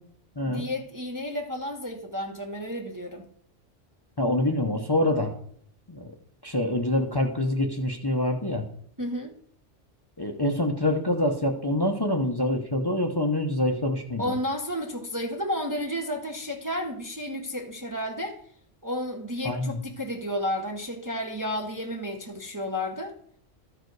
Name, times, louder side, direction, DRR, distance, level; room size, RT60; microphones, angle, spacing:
voice 1, 0.5-3.3 9.0-9.3 14.2-18.4 18.8-23.2, left 1 dB, 20° right, 0.7 m, -32 dB
voice 2, 4.2-5.3 5.9-6.1 6.4-8.7 10.2-14.3 19.4-19.8, left 1 dB, 25° left, 0.8 m, -26 dB
13.5 x 5.0 x 4.6 m
omnidirectional pair, 1.2 m